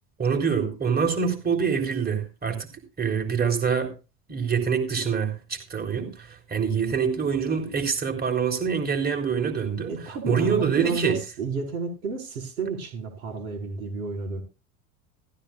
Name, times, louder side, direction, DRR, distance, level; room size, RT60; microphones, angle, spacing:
voice 1, 0.2-2.7 3.0-3.9 4.3-9.9 10.3-11.2, right 6 dB, 25° right, 4.0 m, -25 dB
voice 2, 9.9-14.4, right 4 dB, 85° right, 5.2 m, -31 dB
15.0 x 15.0 x 2.5 m
hypercardioid pair, 95°, 41 cm